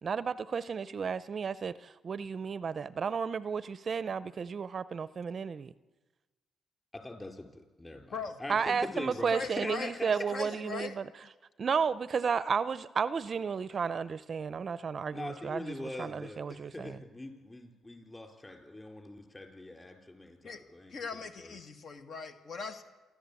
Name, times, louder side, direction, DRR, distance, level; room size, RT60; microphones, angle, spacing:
voice 1, 0.0-5.7 8.5-11.0 11.6-17.0, right 6 dB, 45° right, 17 dB, 0.6 m, -33 dB
voice 2, 6.9-10.3 10.7-10.8 15.1-21.5, left 2 dB, 15° left, 4 dB, 4.0 m, -43 dB
voice 3, 9.3-11.0 20.4-20.6 20.9-22.8, left 5 dB, 60° left, 6 dB, 1.9 m, -40 dB
28.0 x 11.5 x 8.4 m, 1.2 s
cardioid pair, 90°, 0 cm